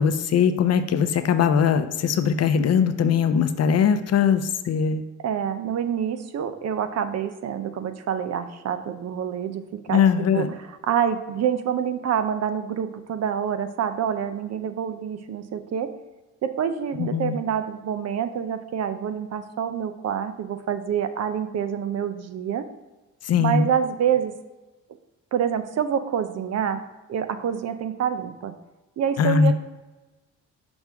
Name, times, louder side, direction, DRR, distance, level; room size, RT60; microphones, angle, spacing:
voice 1, 0.0-5.0 9.9-10.5 17.0-17.4 23.2-23.7 29.2-29.5, left 7 dB, 55° left, 9 dB, 0.6 m, -20 dB
voice 2, 5.2-15.9 16.4-22.7 23.4-24.3 25.3-28.5 29.0-29.5, right 8 dB, 60° right, 10 dB, 0.7 m, -27 dB
6.1 x 5.3 x 3.5 m, 1.1 s
cardioid pair, 90°, 30 cm